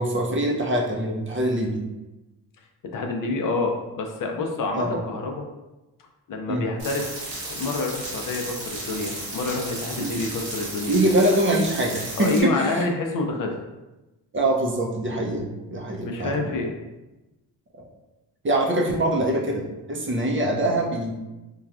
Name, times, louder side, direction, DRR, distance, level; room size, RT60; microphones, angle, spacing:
voice 1, 0.0-1.8 4.7-5.0 6.5-6.7 10.0-10.1 10.9-12.9 14.3-16.5 18.4-21.1, right 1 dB, 30° right, 0 dB, 0.5 m, -24 dB
voice 2, 2.9-5.4 6.3-7.2 7.5-11.0 12.2-13.5 16.1-16.7, left 3 dB, 55° left, 2 dB, 0.5 m, -27 dB
sound 1, 6.8-12.4, right 2 dB, 80° right, 1.2 m, -34 dB
3.1 x 2.3 x 2.3 m, 1.0 s
cardioid pair, 65°, 40 cm